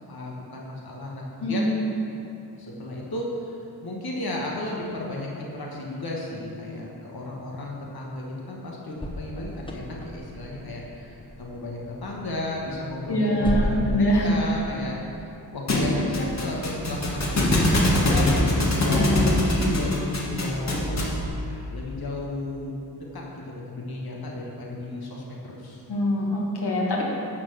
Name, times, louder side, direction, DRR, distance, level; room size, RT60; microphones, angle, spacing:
voice 1, 0.1-1.7 2.6-15.0 15.5-18.3 18.7-25.8, left 1 dB, 70° left, -3 dB, 1.6 m, -33 dB
sound 1, 9.0-19.6, left 1 dB, 15° left, 1.1 m, -36 dB
voice 2, 13.1-14.3 18.9-19.2 25.9-27.0, equal, 90° left, -3 dB, 2.1 m, -24 dB
Thump thud, 15.7-21.3, left 1 dB, 45° left, 1.6 m, -23 dB
12.0 x 4.6 x 7.7 m, 2.8 s
wide cardioid pair, 120°, 39 cm